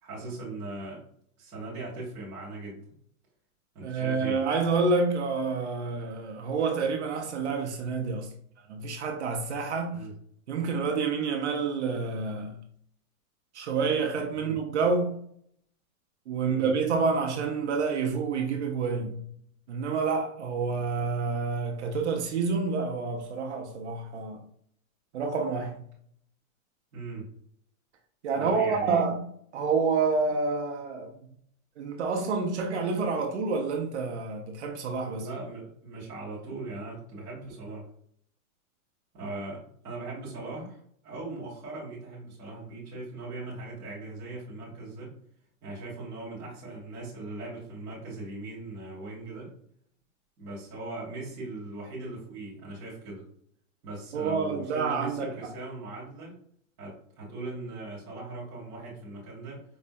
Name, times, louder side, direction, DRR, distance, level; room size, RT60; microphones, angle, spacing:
voice 1, 0.0-1.0 1.4-2.8 3.7-4.4 9.9-10.1 14.4-14.6 16.5-16.7 26.9-27.3 28.3-29.0 35.2-37.9 39.1-45.1 45.6-49.5 50.4-53.3 53.8-56.4 56.8-59.6, right 2 dB, 10° right, 0.6 m, -39 dB
voice 2, 3.8-8.3 8.7-10.0 10.5-12.6 13.5-15.2 16.3-19.3 19.7-24.4 25.1-25.8 28.2-29.2 29.5-31.3 31.8-35.3 54.1-55.3, right 4 dB, 55° right, 0.5 m, -28 dB
4.5 x 2.1 x 2.6 m
supercardioid pair, 175°, 43 cm